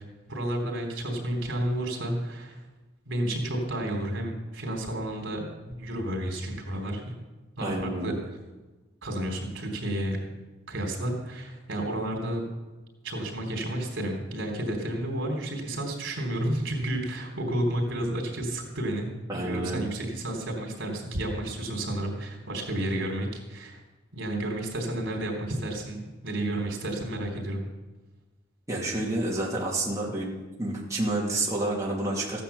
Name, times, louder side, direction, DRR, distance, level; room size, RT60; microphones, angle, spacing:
voice 1, 0.3-2.6 3.1-5.5 5.8-7.1 7.6-8.1 9.0-10.2 10.7-12.4 13.0-23.8 24.1-27.6, right 1 dB, 75° right, 2 dB, 3.6 m, -31 dB
voice 2, 7.6-8.1 19.3-19.9 28.7-32.4, right 2 dB, 15° right, -5 dB, 2.7 m, -29 dB
15.0 x 10.0 x 7.1 m, 1.2 s
head